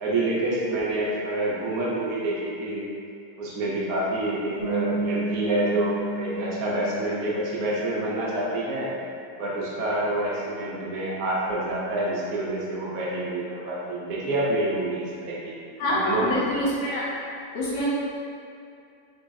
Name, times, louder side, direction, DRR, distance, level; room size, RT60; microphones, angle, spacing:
voice 1, 0.0-2.9 3.4-8.9 9.4-15.5 15.9-16.4, right 1 dB, 65° right, -5 dB, 1.0 m, -27 dB
Bass guitar, 4.6-8.3, right 3 dB, 15° right, 0.7 m, -31 dB
voice 2, 15.8-17.1 17.5-17.9, left 1 dB, 85° left, -7 dB, 1.5 m, -25 dB
4.0 x 2.0 x 3.4 m, 2.5 s
omnidirectional pair, 1.8 m